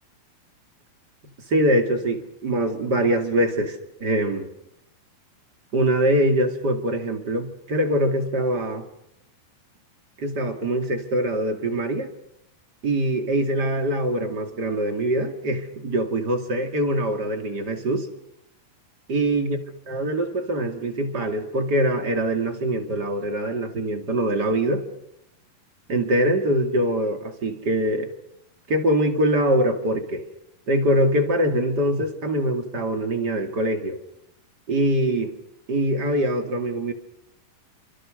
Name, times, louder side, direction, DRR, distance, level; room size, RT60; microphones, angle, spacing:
voice 1, 1.5-4.5 5.7-8.9 10.2-12.1 12.8-18.1 19.1-19.6 19.9-24.8 25.9-28.1 28.7-30.2 30.7-34.0 34.7-35.3 35.7-36.9, right 1 dB, 30° right, 5 dB, 2.5 m, -23 dB
28.5 x 25.5 x 6.4 m, 0.79 s
omnidirectional pair, 4.2 m